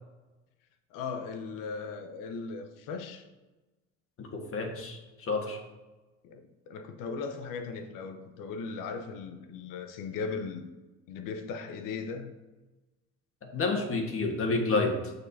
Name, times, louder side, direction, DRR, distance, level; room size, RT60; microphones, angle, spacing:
voice 1, 0.9-3.3 6.2-6.4 6.7-10.7 11.1-12.3, left 5 dB, 65° left, 6 dB, 0.9 m, -37 dB
voice 2, 4.2-5.6 13.5-15.1, left 3 dB, 40° left, 2 dB, 1.5 m, -29 dB
6.7 x 6.3 x 2.8 m, 1.1 s
hypercardioid pair, 75°, 34 cm